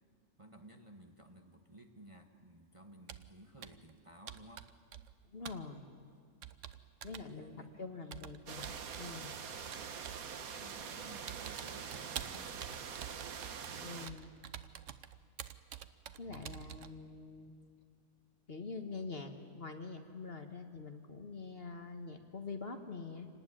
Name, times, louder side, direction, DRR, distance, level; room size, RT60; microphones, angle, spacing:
voice 1, 0.4-4.7 7.0-8.2 10.6-12.8, right 1 dB, 25° right, 3 dB, 1.5 m, -56 dB
Computer keyboard, 3.1-3.3 3.6-3.9 4.3-5.2 5.5-5.7 6.4-7.3 8.1-9.1 9.7-10.3 10.7-10.9 11.3-17.0, right 9 dB, 65° right, 1.1 m, -48 dB
voice 2, 5.2-5.9 7.0-8.7 9.0-9.4 13.8-14.3 16.2-17.5 18.5-23.3, left 4 dB, 45° left, 5 dB, 1.7 m, -45 dB
sound 1, 8.5-14.1, right 6 dB, 85° right, 1.6 m, -44 dB
27.0 x 18.5 x 9.9 m, 2.2 s
omnidirectional pair, 1.5 m